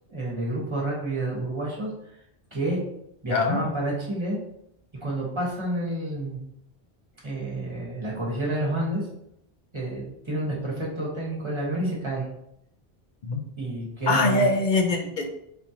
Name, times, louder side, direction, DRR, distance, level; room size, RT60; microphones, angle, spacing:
voice 1, 0.1-1.9 2.5-2.8 3.2-4.4 5.0-6.4 7.2-9.1 9.7-12.3 13.6-14.5, right 1 dB, 30° right, -5 dB, 1.5 m, -29 dB
voice 2, 3.3-3.6 13.3-13.4 14.1-15.3, left 3 dB, 55° left, 3 dB, 0.7 m, -23 dB
4.2 x 4.2 x 2.9 m, 0.78 s
omnidirectional pair, 1.0 m